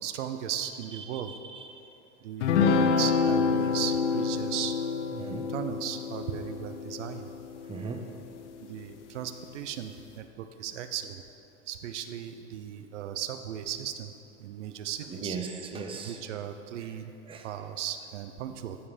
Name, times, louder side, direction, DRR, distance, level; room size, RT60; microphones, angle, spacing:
voice 1, 0.0-1.3 2.2-4.8 5.2-7.3 8.6-11.2 11.7-14.1 14.4-15.4 15.9-17.1 17.4-18.8, right 10 dB, 85° right, 8 dB, 0.8 m, -36 dB
voice 2, 1.0-1.8 5.2-5.5 7.7-8.0 15.1-16.2 16.8-16.9 17.3-17.5, right 5 dB, 15° right, 4 dB, 0.8 m, -38 dB
sound 1, 2.4-8.1, left 5 dB, 85° left, 0.9 m, -27 dB
14.5 x 5.7 x 5.0 m, 2.8 s
supercardioid pair, 135°, 35 cm